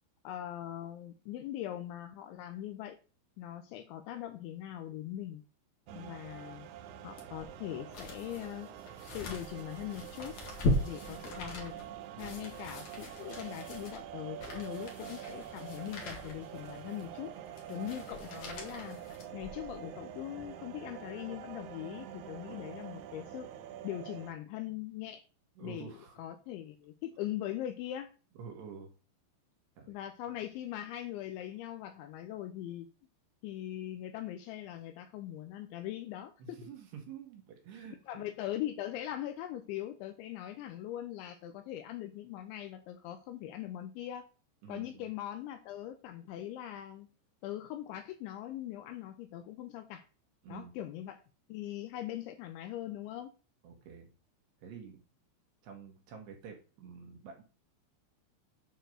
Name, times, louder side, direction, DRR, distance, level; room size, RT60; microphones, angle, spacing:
voice 1, 0.2-3.0 3.4-5.4 5.9-6.7 7.0-8.7 9.1-10.4 10.8-11.8 12.2-17.3 17.7-19.0 19.3-23.5 23.8-25.2 25.6-28.1 29.9-32.9 33.4-36.7 38.1-44.3 44.7-47.1 47.4-50.1 50.5-51.2 51.5-53.3, left 12 dB, 80° left, 7 dB, 2.8 m, -41 dB
voice 2, 5.9-6.2 11.0-11.1 12.1-12.4 17.7-18.0 22.5-22.8 25.6-26.2 28.4-28.9 29.8-29.9 36.4-38.3 44.6-45.1 50.4-50.7 53.6-54.1 54.6-55.0 55.6-57.4, right 7 dB, 65° right, 2 dB, 3.2 m, -49 dB
sound 1, 5.9-24.3, right 10 dB, 90° right, 2.3 m, -46 dB
sound 2, 7.2-19.8 20.3-20.4, left 1 dB, 50° left, 2.4 m, -39 dB
9.1 x 4.5 x 6.4 m, 0.36 s
omnidirectional pair, 5.8 m